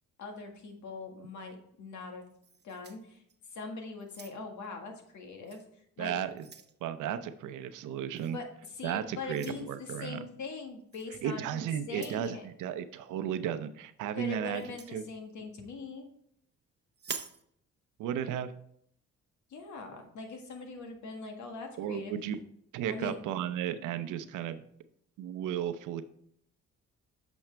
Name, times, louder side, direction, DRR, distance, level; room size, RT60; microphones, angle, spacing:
voice 1, 0.2-2.2 2.6-3.2 3.5-6.1 8.3-12.5 14.2-16.1 19.5-22.1 22.9-23.2, left 3 dB, 70° left, 4 dB, 1.8 m, -42 dB
sound 1, 2.4-3.6 4.0-4.7 5.5-5.6 6.1-6.8 8.2-8.4 9.3-9.6 10.9-11.1 11.9-12.3 14.5-15.0 16.9-17.4, right 6 dB, 35° right, 0.8 m, -45 dB
voice 2, 6.0-6.4 6.8-8.4 8.8-10.3 11.2-14.6 14.9-15.0 18.0-18.5 21.8-22.4 22.7-24.6 25.2-26.0, right 9 dB, 85° right, 11 dB, 0.7 m, -34 dB
8.8 x 6.3 x 3.4 m, 0.70 s
cardioid pair, 90°, 30 cm